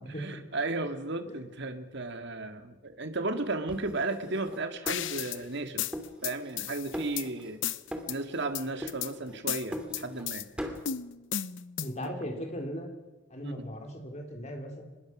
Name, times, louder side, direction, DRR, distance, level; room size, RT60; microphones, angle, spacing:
voice 1, 0.1-5.8 6.2-7.6 8.1-10.5 12.0-12.1 13.4-13.5, right 2 dB, 60° right, 7 dB, 2.0 m, -34 dB
sound 1, 3.7-5.6 5.9-6.7 6.9-7.6 7.9-8.5 8.8-10.3 10.6-10.9, equal, 5° right, 2.5 m, -41 dB
sound 2, 4.9-5.4 5.8-7.3 7.6-8.2 8.5-9.1 9.5-10.4 10.9-12.1, left 10 dB, 65° left, 0.8 m, -34 dB
voice 2, 11.8-12.9 13.3-14.8, equal, 35° left, 3 dB, 3.9 m, -38 dB
24.5 x 21.0 x 6.1 m, 1.1 s
head